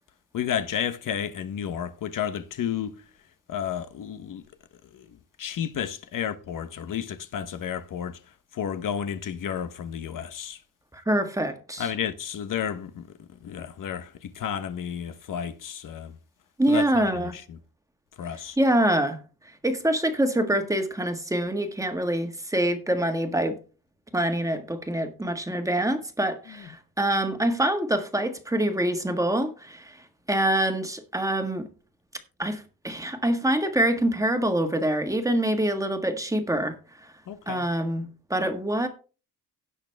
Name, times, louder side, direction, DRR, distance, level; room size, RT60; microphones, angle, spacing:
voice 1, 0.3-2.9 3.5-4.4 4.9-5.1 5.4-8.2 8.5-10.6 11.8-13.1 13.4-16.2 16.7-17.6 18.2-18.6 26.5-26.6 37.3-37.7, left 9 dB, 60° left, 1.0 m, -32 dB
voice 2, 10.9-11.9 16.6-17.4 18.6-19.2 19.6-23.6 24.1-30.0 30.3-31.7 32.4-36.8 37.5-38.9, right 1 dB, 10° right, 1.5 m, -25 dB
17.0 x 6.3 x 3.4 m
cardioid pair, 130°, 36 cm